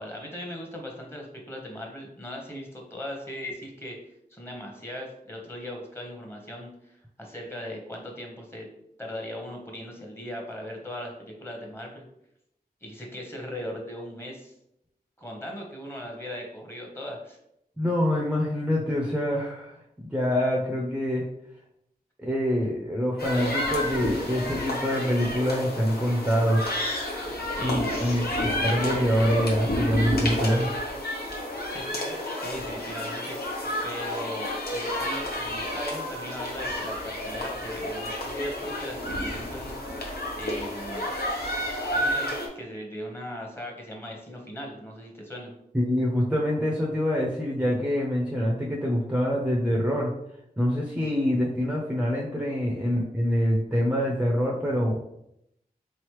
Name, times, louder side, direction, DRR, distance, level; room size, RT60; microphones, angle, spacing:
voice 1, 0.0-4.0 4.3-8.7 9.0-12.0 12.8-14.5 15.2-17.4 27.6-28.6 31.5-41.1 41.9-45.5, equal, 15° left, 0 dB, 1.0 m, -39 dB
voice 2, 17.8-21.3 22.2-26.8 27.6-30.7 45.7-50.1 50.6-55.0, equal, 10° right, -2 dB, 0.6 m, -25 dB
sound 1, 23.2-42.5, left 1 dB, 80° left, 0.9 m, -30 dB
3.9 x 3.2 x 3.1 m, 0.79 s
wide cardioid pair, 80°, 16 cm